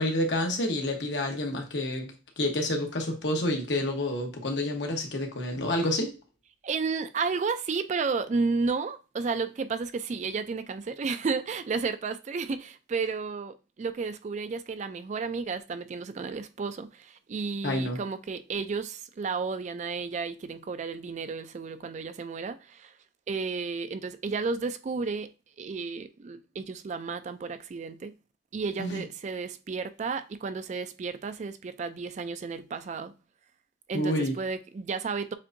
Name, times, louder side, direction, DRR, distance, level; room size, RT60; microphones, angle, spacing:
voice 1, 0.0-2.1 2.4-6.1 17.6-18.0 28.8-29.0 33.9-34.3, left 1 dB, 75° left, 1.1 m, -28 dB
voice 2, 6.6-22.9 23.3-25.3 25.6-28.1 28.5-33.1 33.9-35.3, right 4 dB, 40° right, 0.3 m, -32 dB
7.2 x 2.6 x 2.6 m
head